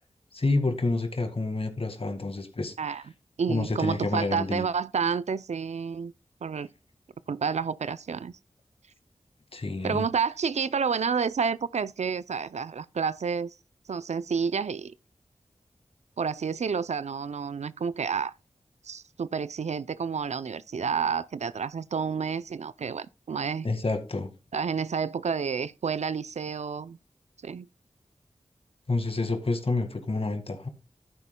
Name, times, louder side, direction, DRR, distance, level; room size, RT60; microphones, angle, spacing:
voice 1, 0.3-3.0 3.5-4.6 9.5-10.1 23.6-24.3 28.9-30.7, left 3 dB, 50° left, 1.9 m, -28 dB
voice 2, 3.4-6.1 6.4-6.7 7.3-8.3 9.8-13.5 13.9-14.9 16.2-18.3 18.8-23.7 24.5-27.0 27.4-27.7, right 6 dB, 70° right, 0.4 m, -29 dB
11.5 x 9.5 x 2.2 m
cardioid pair, 45°, 12 cm